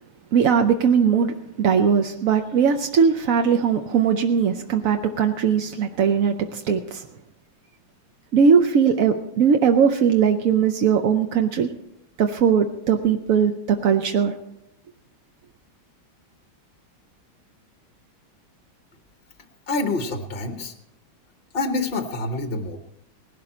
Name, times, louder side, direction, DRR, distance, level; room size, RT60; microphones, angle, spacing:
voice 1, 0.3-7.0 8.3-11.7 12.2-14.3, right 7 dB, 65° right, 5 dB, 0.8 m, -20 dB
voice 2, 19.7-20.7 21.5-22.8, left 2 dB, 40° left, 6 dB, 0.8 m, -26 dB
19.0 x 12.0 x 4.2 m, 0.82 s
omnidirectional pair, 2.2 m